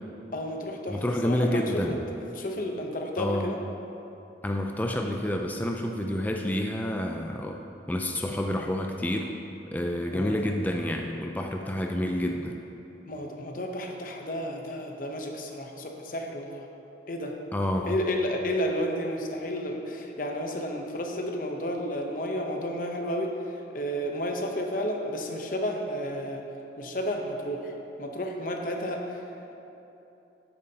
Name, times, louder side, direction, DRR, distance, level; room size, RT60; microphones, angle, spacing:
voice 1, 0.3-2.0 2.3-3.6 10.1-10.5 13.1-16.7 17.1-17.3 17.9-26.5 26.8-29.2, equal, 50° left, 2 dB, 0.8 m, -32 dB
voice 2, 0.9-2.0 3.2-3.5 4.4-7.6 7.9-9.3 9.7-12.6 17.5-17.9, left 1 dB, 10° left, 2 dB, 0.3 m, -29 dB
10.5 x 8.7 x 2.8 m, 2.9 s
head